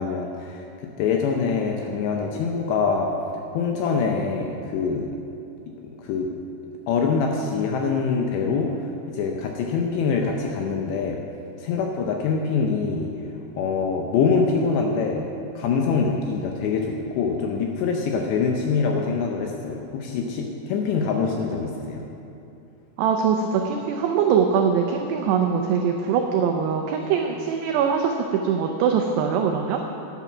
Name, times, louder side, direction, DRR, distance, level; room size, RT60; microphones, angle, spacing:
voice 1, 0.0-3.1 3.5-5.1 6.0-6.3 6.6-8.7 9.1-11.2 11.6-13.1 13.6-15.3 15.6-22.0, left 5 dB, 80° left, 1 dB, 2.6 m, -24 dB
voice 2, 23.0-29.8, right 6 dB, 90° right, 3 dB, 2.4 m, -22 dB
11.0 x 10.5 x 6.0 m, 2.7 s
omnidirectional pair, 5.7 m